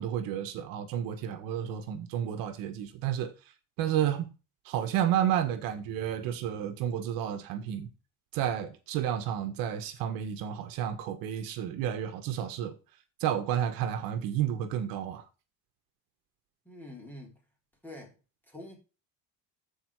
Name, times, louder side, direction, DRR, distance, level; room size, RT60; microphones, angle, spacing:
voice 1, 0.0-3.3 3.8-4.3 4.6-7.9 8.3-12.8 13.2-15.2, right 10 dB, 65° right, 1.5 m, -31 dB
voice 2, 16.7-17.3 17.8-18.2 18.5-18.8, left 1 dB, 5° left, 3.5 m, -45 dB
14.5 x 4.8 x 4.8 m
cardioid pair, 170°, 36 cm